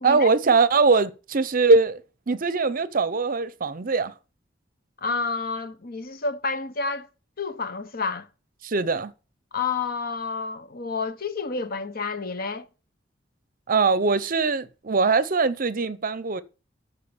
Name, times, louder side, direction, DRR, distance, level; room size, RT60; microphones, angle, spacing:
voice 1, 0.0-2.0 2.3-4.1 8.6-9.1 13.7-16.4, right 4 dB, 45° right, 0.7 m, -21 dB
voice 2, 5.0-7.1 7.4-8.3 9.5-12.7, left 4 dB, 50° left, 1.1 m, -29 dB
14.0 x 4.7 x 7.2 m
head